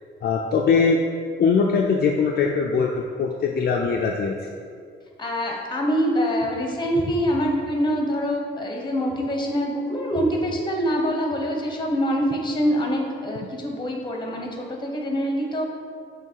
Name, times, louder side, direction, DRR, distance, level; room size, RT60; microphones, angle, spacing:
voice 1, 0.2-1.0 1.4-4.3, left 5 dB, 55° left, 1 dB, 0.5 m, -21 dB
voice 2, 5.2-15.6, equal, 25° left, 1 dB, 1.2 m, -25 dB
6.9 x 3.2 x 4.6 m, 2.2 s
cardioid pair, 90°, 20 cm